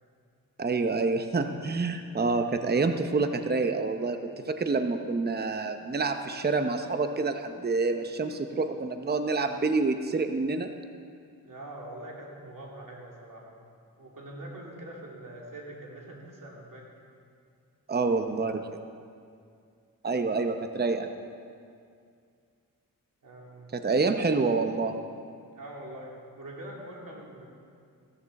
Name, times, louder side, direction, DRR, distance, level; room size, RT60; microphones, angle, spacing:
voice 1, 0.6-10.7 17.9-18.6 20.0-21.1 23.7-24.9, right 3 dB, 30° right, 7 dB, 0.7 m, -27 dB
voice 2, 11.4-13.6 14.0-16.9 23.2-23.7 25.5-27.5, right 1 dB, 65° right, -3 dB, 3.0 m, -43 dB
15.5 x 13.5 x 4.1 m, 2.3 s
wide cardioid pair, 90°, 35 cm